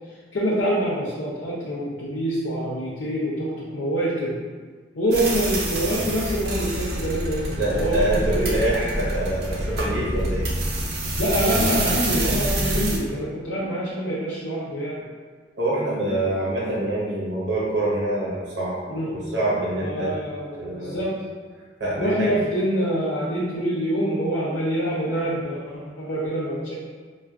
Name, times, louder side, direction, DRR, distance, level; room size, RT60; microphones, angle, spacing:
voice 1, 0.3-4.3 5.0-8.6 11.2-15.0 18.9-19.1 19.8-21.2 22.0-26.7, equal, 80° left, -7 dB, 0.6 m, -25 dB
sound 1, 5.1-13.0, right 1 dB, 60° right, 0.6 m, -26 dB
voice 2, 7.3-10.5 15.6-18.8 19.1-20.1 20.6-21.0 21.8-22.4, right 1 dB, 80° right, -6 dB, 0.8 m, -25 dB
4.4 x 2.4 x 2.4 m, 1.5 s
head